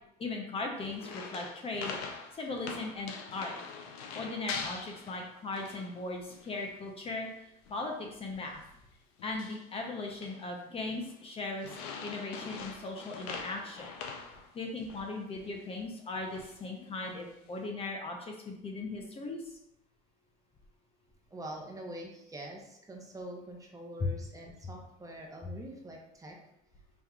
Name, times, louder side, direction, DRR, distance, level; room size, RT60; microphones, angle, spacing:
voice 1, 0.2-3.6 4.1-7.3 7.7-8.6 9.2-11.7 12.0-13.9 14.5-19.4 24.0-24.1, left 3 dB, 30° left, 1 dB, 0.7 m, -38 dB
sound 1, 0.8-6.0 6.3-6.7 7.0-7.2 7.7-7.9 8.3-8.6 9.2-9.7 10.0-10.5 10.9-11.2 11.6-15.1 15.4-15.5 16.1-16.6 17.1-17.5, left 5 dB, 90° left, 0.6 m, -44 dB
voice 2, 21.3-26.4, right 1 dB, 15° right, 0 dB, 0.9 m, -44 dB
5.3 x 2.9 x 2.4 m, 0.80 s
supercardioid pair, 95°, 19 cm